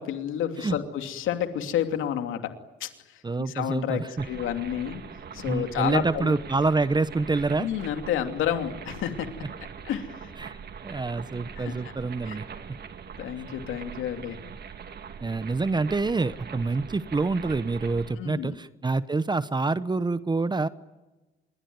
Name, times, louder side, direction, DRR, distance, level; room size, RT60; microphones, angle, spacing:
voice 1, 0.0-2.5 2.8-5.0 5.3-6.4 7.6-9.3 9.8-10.3 11.5-11.9 12.2-12.4 13.2-14.4 18.1-18.6, left 10 dB, 85° left, 6 dB, 2.8 m, -30 dB
voice 2, 3.2-4.2 5.4-7.7 10.4-10.6 10.8-12.4 15.2-20.7, right 3 dB, 20° right, 14 dB, 1.0 m, -27 dB
sound 1, 4.2-18.1, right 7 dB, 55° right, 2.4 m, -42 dB
26.5 x 22.0 x 9.6 m, 1.1 s
cardioid pair, 90°, 20 cm